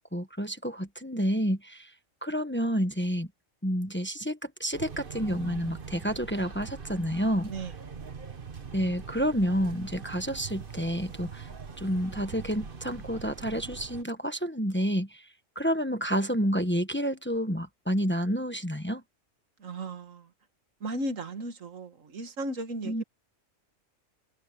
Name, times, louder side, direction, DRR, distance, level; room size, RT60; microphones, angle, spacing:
voice 1, 0.1-1.9 2.2-3.3 3.6-7.5 8.7-11.5 11.8-15.3 15.5-19.0 22.8-23.0, equal, 10° left, 1.2 m, -29 dB
sound 1, 4.7-14.0, right 6 dB, 45° right, 1.5 m, -42 dB
voice 2, 19.6-20.3 20.8-23.0, right 2 dB, 80° right, 2.0 m, -35 dB
omnidirectional pair, 1.3 m